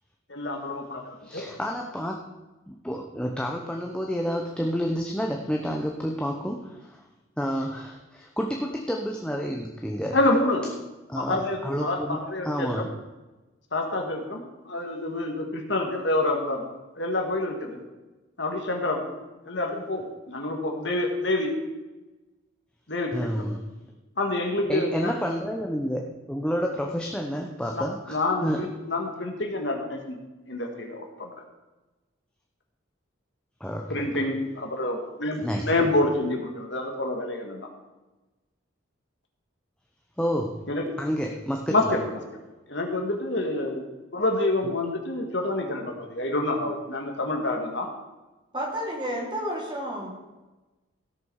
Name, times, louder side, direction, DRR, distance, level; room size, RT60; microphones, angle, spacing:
voice 1, 0.3-1.5 10.1-10.7 11.1-12.9 13.7-16.7 17.0-17.8 18.4-19.0 19.5-21.6 22.9-23.5 24.2-25.1 27.7-30.2 30.5-31.3 33.9-37.7 40.7-40.8 41.7-42.2 42.7-43.8 44.1-47.9, left 2 dB, 60° left, 2 dB, 1.9 m, -27 dB
voice 2, 1.2-2.2 2.7-7.0 7.4-10.2 11.1-12.2 12.4-12.9 23.1-23.7 24.7-28.6 33.6-34.3 35.4-35.9 40.2-40.6 41.0-41.9 44.6-44.7, equal, 5° left, 1 dB, 0.8 m, -30 dB
voice 3, 48.5-50.1, equal, 25° right, -3 dB, 3.0 m, -31 dB
16.5 x 6.9 x 4.8 m, 1.1 s
head